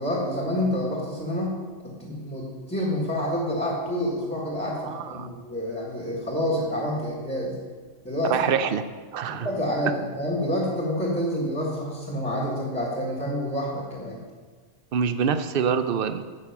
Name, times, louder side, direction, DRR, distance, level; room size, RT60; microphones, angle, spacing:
voice 1, 0.0-7.6 8.0-8.5 9.2-14.2, equal, 10° left, -4 dB, 1.5 m, -28 dB
voice 2, 4.8-5.3 8.3-8.8 9.1-9.5 14.9-16.2, right 7 dB, 60° right, 10 dB, 0.7 m, -25 dB
8.9 x 6.4 x 5.9 m, 1.5 s
omnidirectional pair, 1.2 m